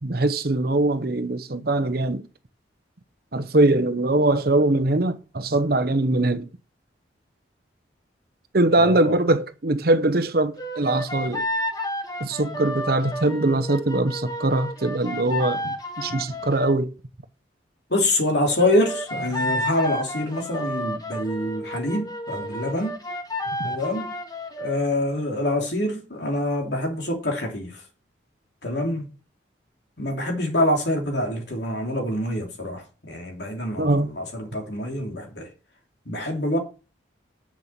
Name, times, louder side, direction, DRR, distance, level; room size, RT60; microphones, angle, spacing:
voice 1, 0.0-2.3 3.3-6.5 8.5-11.4 12.2-16.9 23.6-23.7 33.8-34.1, right 2 dB, 50° right, 0.8 m, -22 dB
voice 2, 8.8-9.1 17.9-23.0 23.6-24.1 24.6-27.8 28.6-29.1 30.0-35.5 36.1-36.6, left 1 dB, 65° left, 2.9 m, -25 dB
sound 1, 10.6-16.8 18.6-24.8, left 1 dB, 20° left, 1.2 m, -31 dB
7.5 x 6.8 x 7.4 m
head